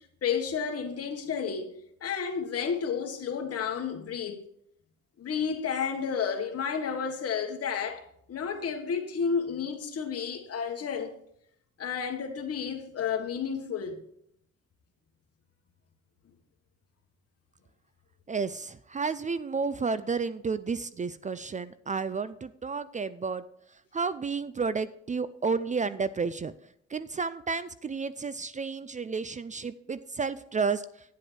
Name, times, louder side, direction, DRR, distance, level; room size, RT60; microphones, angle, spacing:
voice 1, 0.2-4.4 5.2-8.0 8.3-11.1 11.8-14.0, left 6 dB, 55° left, 1.5 m, -31 dB
voice 2, 18.3-23.4 23.9-26.5 26.9-30.8, right 5 dB, 25° right, 0.4 m, -31 dB
9.2 x 7.8 x 4.6 m
cardioid pair, 90°, 30 cm